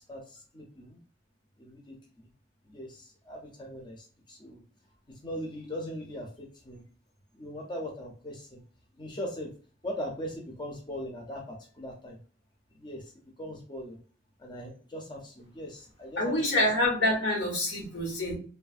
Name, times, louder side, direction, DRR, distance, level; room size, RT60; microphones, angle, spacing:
voice 1, 0.1-1.0 1.6-2.3 2.7-4.6 5.2-6.8 7.3-8.6 9.0-9.5 9.8-12.2 12.7-13.1 13.4-14.0 14.4-16.6, equal, 25° left, 0 dB, 0.5 m, -40 dB
voice 2, 16.2-18.4, left 1 dB, 80° left, -1 dB, 1.1 m, -26 dB
3.2 x 2.0 x 2.4 m, 0.40 s
head